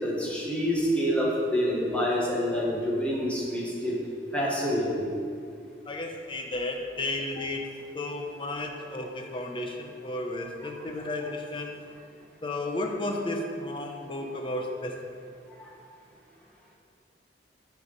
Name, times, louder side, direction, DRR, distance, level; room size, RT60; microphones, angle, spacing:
voice 1, 0.0-4.0 4.3-5.1 15.6-15.7, equal, 5° left, -5 dB, 1.5 m, -27 dB
voice 2, 5.9-7.7 7.9-11.7 12.4-15.0, left 2 dB, 30° left, 2 dB, 0.8 m, -33 dB
9.8 x 4.7 x 5.2 m, 2.4 s
head